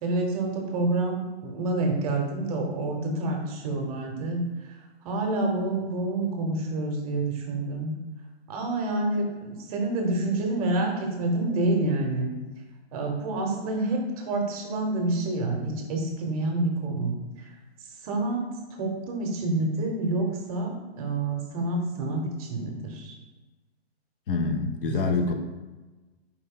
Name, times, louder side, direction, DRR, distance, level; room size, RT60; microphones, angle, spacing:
voice 1, 0.0-4.4 5.0-7.9 8.5-12.3 12.9-17.5 18.0-18.4 18.7-23.1 25.0-25.1, right 2 dB, 35° right, 2 dB, 0.8 m, -28 dB
voice 2, 24.3-25.3, left 4 dB, 55° left, 6 dB, 0.6 m, -26 dB
4.4 x 2.6 x 3.7 m, 1.2 s
hypercardioid pair, 135°, 33 cm